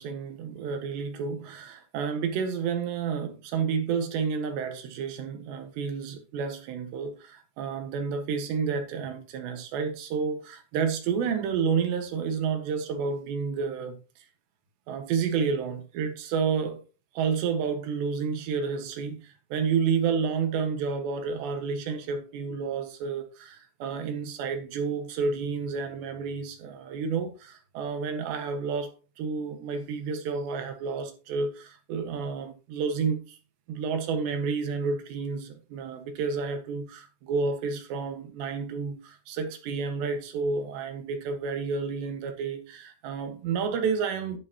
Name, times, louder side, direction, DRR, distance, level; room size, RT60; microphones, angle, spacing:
voice 1, 0.0-14.0 14.9-16.8 17.1-33.4 33.7-44.4, right 5 dB, 65° right, 3.3 m, -30 dB
11.5 x 8.4 x 2.9 m
omnidirectional pair, 5.9 m